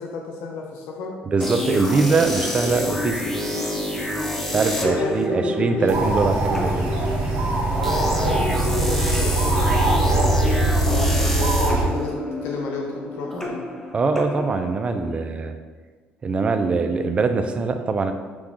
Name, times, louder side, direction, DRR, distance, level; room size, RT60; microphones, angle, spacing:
voice 1, 0.0-1.2 4.8-6.2 7.8-13.6, left 4 dB, 85° left, 0 dB, 0.5 m, -31 dB
voice 2, 1.3-3.2 4.5-6.9 13.9-15.5 16.2-18.1, right 4 dB, 30° right, 7 dB, 0.4 m, -22 dB
sound 1, 1.4-15.1, left 1 dB, 10° left, 0.7 m, -28 dB
sound 2, 5.9-11.8, right 1 dB, 65° right, 1.1 m, -21 dB
6.0 x 2.3 x 3.6 m, 1.4 s
cardioid pair, 110°, 4 cm